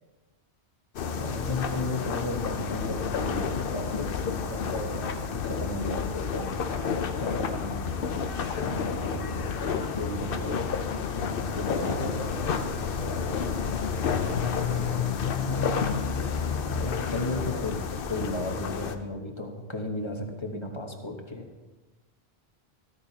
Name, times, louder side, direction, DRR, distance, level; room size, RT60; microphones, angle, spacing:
sound 1, 0.9-18.9, left 6 dB, 60° left, 0.8 m, -30 dB
voice 1, 1.1-6.6 7.2-10.7 11.1-12.2 16.4-21.5, left 1 dB, 30° left, 3 dB, 1.1 m, -35 dB
voice 2, 11.2-15.2, equal, 70° right, -9 dB, 2.8 m, -41 dB
13.5 x 13.5 x 2.8 m, 1.2 s
omnidirectional pair, 1.1 m